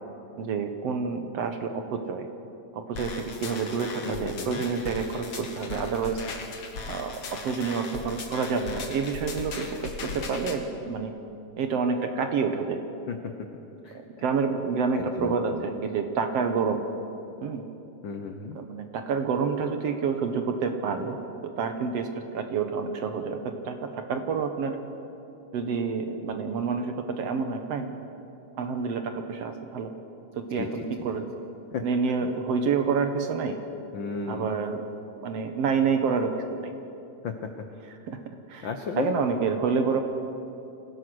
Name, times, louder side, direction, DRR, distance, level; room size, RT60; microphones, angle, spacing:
voice 1, 0.4-2.3 2.7-6.2 6.9-11.1 11.6-12.8 14.2-16.8 17.4-17.6 18.6-21.2 21.4-22.1 22.3-24.8 25.5-27.9 28.6-29.9 30.4-31.3 31.8-33.6 34.3-34.8 35.2-36.7 38.1-38.2 38.5-38.7 39.0-40.0, right 5 dB, 60° right, 6 dB, 1.9 m, -28 dB
sound 1, 3.0-10.6, left 4 dB, 45° left, 2.1 m, -38 dB
voice 2, 4.0-4.7 13.1-13.3 13.8-14.0 14.9-15.6 18.0-18.6 30.5-30.9 31.7-31.8 33.9-34.5 37.2-37.5 38.6-39.1, left 5 dB, 90° left, 5 dB, 1.0 m, -34 dB
26.0 x 16.5 x 6.3 m, 2.8 s
omnidirectional pair, 3.7 m